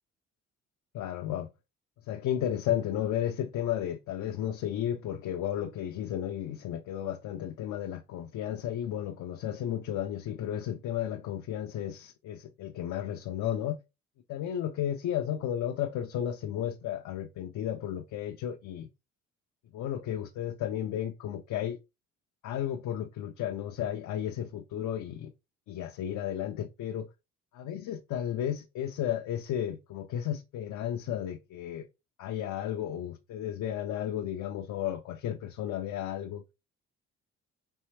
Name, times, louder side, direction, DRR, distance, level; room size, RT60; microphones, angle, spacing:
voice 1, 0.9-1.5 2.1-13.8 14.3-18.9 19.7-21.8 22.4-25.3 25.7-27.1 27.5-31.9 32.2-36.4, left 10 dB, 75° left, 0.6 m, -33 dB
4.4 x 3.2 x 3.2 m
cardioid pair, 90°, 30 cm